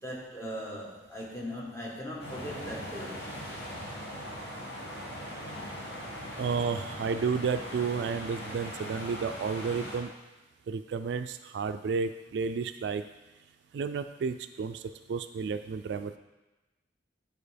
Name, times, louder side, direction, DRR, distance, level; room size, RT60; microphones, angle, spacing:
voice 1, 0.0-3.2, equal, 15° left, -3 dB, 1.2 m, -39 dB
sound 1, 2.2-10.0, equal, 60° left, 2.0 m, -40 dB
voice 2, 6.4-10.1 10.7-13.0 13.7-14.8 15.1-16.2, right 5 dB, 70° right, 10 dB, 0.3 m, -31 dB
9.6 x 4.5 x 3.4 m, 1.1 s
head